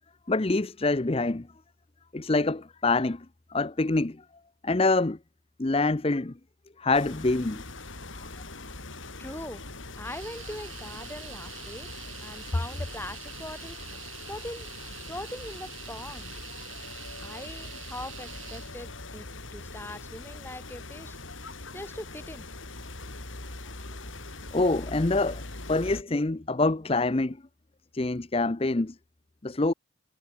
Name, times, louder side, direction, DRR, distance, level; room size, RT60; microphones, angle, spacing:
voice 1, 0.3-1.5 2.1-3.2 3.5-4.2 4.6-5.2 5.6-6.3 6.8-7.6 24.5-25.4 25.7-27.4 27.9-28.9 29.4-29.7, left 2 dB, 30° left, 0.6 m, -25 dB
sound 1, 6.9-26.0, left 2 dB, 75° left, 4.8 m, -42 dB
voice 2, 9.2-9.6 9.9-13.8 14.3-14.7 15.1-16.3 17.2-22.5, left 1 dB, 10° left, 4.4 m, -41 dB
sound 2, 10.1-18.7, right 12 dB, 85° right, 6.9 m, -45 dB
head